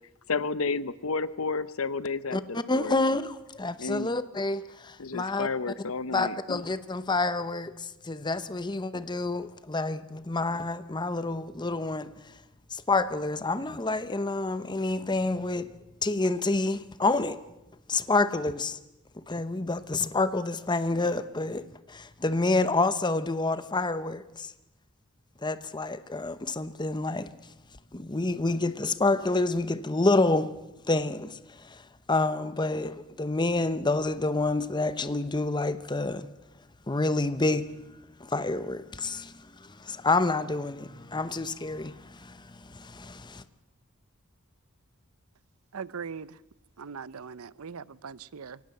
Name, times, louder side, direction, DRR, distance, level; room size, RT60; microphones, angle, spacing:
voice 1, 0.3-3.0 3.8-4.1 5.0-6.6, left 4 dB, 70° left, 0.8 m, -31 dB
voice 2, 2.3-5.5 6.1-12.1 12.7-15.7 16.0-17.4 17.9-18.8 19.3-24.5 25.4-27.3 27.9-30.5 30.9-31.8 32.1-36.3 36.9-37.7 38.2-43.4, left 2 dB, 20° left, 0.8 m, -28 dB
voice 3, 45.7-46.4 46.8-48.6, right 6 dB, 85° right, 0.7 m, -40 dB
23.5 x 18.0 x 7.7 m
head